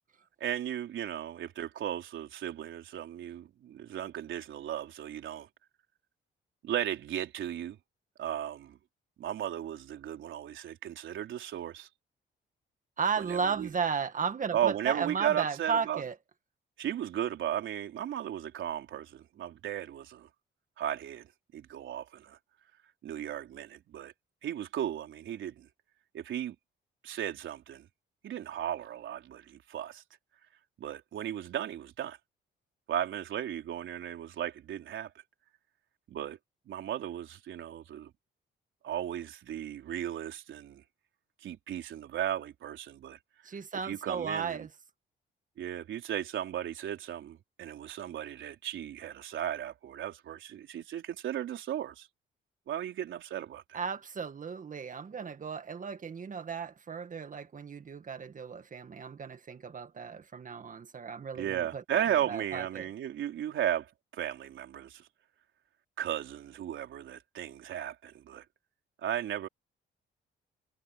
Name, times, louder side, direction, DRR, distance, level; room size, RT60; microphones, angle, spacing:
voice 1, 0.4-5.5 6.6-7.8 8.2-8.8 9.2-11.9 13.3-13.7 14.5-16.0 16.8-20.3 20.8-21.3 21.5-22.4 23.0-24.1 24.4-25.7 26.1-26.6 27.0-27.9 28.2-30.0 30.8-32.2 32.9-35.1 36.1-36.4 36.7-38.1 38.8-40.8 41.4-43.2 43.8-44.7 45.6-52.1 52.7-53.8 61.3-65.1 66.0-68.4 69.0-69.5, right 10 dB, 75° right, 4.2 m, -35 dB
voice 2, 13.0-16.1 43.4-44.7 53.7-62.9, right 6 dB, 40° right, 1.9 m, -35 dB
cardioid pair, 90°, 20 cm